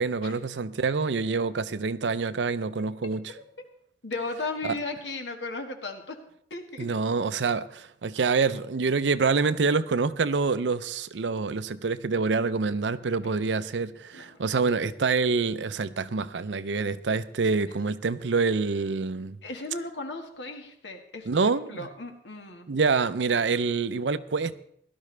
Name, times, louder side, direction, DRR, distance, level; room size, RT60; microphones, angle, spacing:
voice 1, 0.0-3.3 4.6-4.7 6.8-19.4 21.3-21.9 22.7-24.6, right 4 dB, 90° right, 0.6 m, -26 dB
voice 2, 4.0-6.2 6.5-6.9 14.1-14.4 19.4-22.7, left 3 dB, 85° left, 1.7 m, -36 dB
17.0 x 12.0 x 3.3 m
head